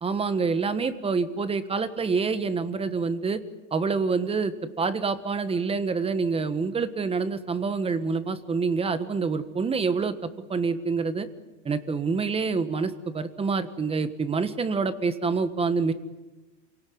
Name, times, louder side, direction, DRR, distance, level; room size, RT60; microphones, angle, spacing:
voice 1, 0.0-3.4 3.7-11.3 11.6-15.9, right 4 dB, 15° right, 12 dB, 1.4 m, -27 dB
27.5 x 18.0 x 9.4 m, 1.1 s
supercardioid pair, 145°, 36 cm